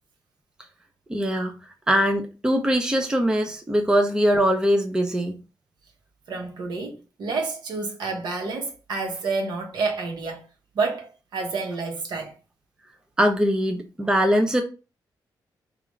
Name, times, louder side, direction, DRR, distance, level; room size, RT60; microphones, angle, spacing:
voice 1, 1.1-1.5 1.9-5.4 13.2-14.6, equal, 10° right, 0.5 m, -22 dB
voice 2, 6.3-10.5 10.7-12.3, right 4 dB, 75° right, 1.0 m, -29 dB
4.8 x 2.4 x 3.1 m
wide cardioid pair, 155°, 7 cm